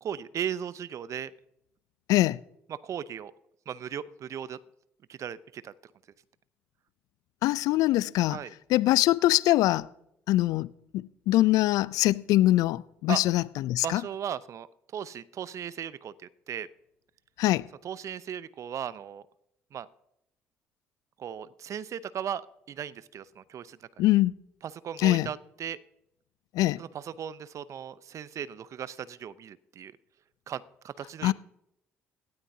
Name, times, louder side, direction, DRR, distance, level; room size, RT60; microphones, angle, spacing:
voice 1, 0.0-1.3 2.7-3.3 3.7-4.6 5.1-5.7 8.3-8.5 13.1-13.2 13.8-14.7 14.9-16.1 16.5-16.7 17.8-19.2 19.7-19.9 21.2-22.4 22.7-24.1 24.6-25.8 26.8-29.9 30.5-31.3, right 9 dB, 50° right, 0.7 m, -37 dB
voice 2, 7.4-8.4 8.7-9.9 10.3-10.7 10.9-14.0 17.4-17.6 24.0-24.3 25.0-25.3 26.5-26.8 31.2-31.3, left 16 dB, 65° left, 0.4 m, -23 dB
17.5 x 12.5 x 2.8 m
hypercardioid pair, 55°, 7 cm